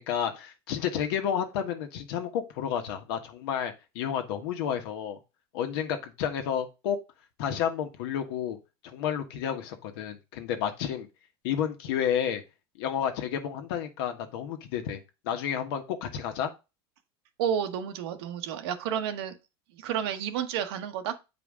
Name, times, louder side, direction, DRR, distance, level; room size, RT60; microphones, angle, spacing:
voice 1, 0.0-5.2 5.5-7.0 7.4-8.6 8.8-11.1 11.4-12.4 12.8-15.0 15.2-16.5, left 9 dB, 70° left, 1.4 m, -31 dB
voice 2, 17.4-19.4 19.8-21.2, right 9 dB, 75° right, 1.2 m, -31 dB
8.1 x 4.9 x 3.7 m
supercardioid pair, 150°, 13 cm